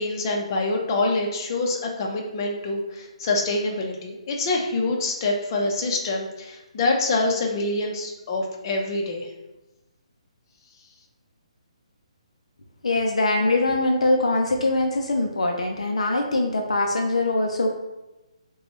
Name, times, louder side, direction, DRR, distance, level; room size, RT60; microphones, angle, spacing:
voice 1, 0.0-9.3, left 2 dB, 40° left, 1 dB, 0.8 m, -26 dB
voice 2, 12.8-17.7, left 2 dB, 75° left, 2 dB, 0.5 m, -22 dB
5.1 x 2.3 x 3.0 m, 1.0 s
figure-of-eight pair, 140°, 3 cm